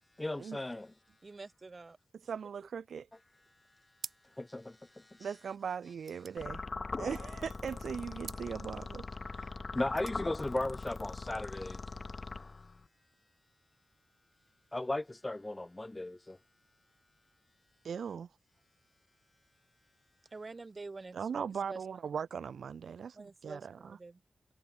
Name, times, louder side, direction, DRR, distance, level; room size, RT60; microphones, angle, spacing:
voice 1, 0.2-0.9 4.4-5.3 9.7-11.8 14.7-16.4, left 2 dB, 15° left, 0.5 m, -36 dB
voice 2, 1.2-2.0 20.3-21.8 23.1-24.2, right 3 dB, 30° right, 1.8 m, -47 dB
voice 3, 2.3-3.1 5.2-6.6 7.0-9.5 17.8-18.3 21.1-23.7, right 7 dB, 80° right, 0.4 m, -39 dB
sound 1, 3.9-4.5 4.8-4.9 5.2-7.4 8.2-8.5 9.7-10.2, right 5 dB, 55° right, 0.9 m, -49 dB
sound 2, 6.4-12.9, left 3 dB, 30° left, 1.2 m, -41 dB
wide cardioid pair, 170°, 0 cm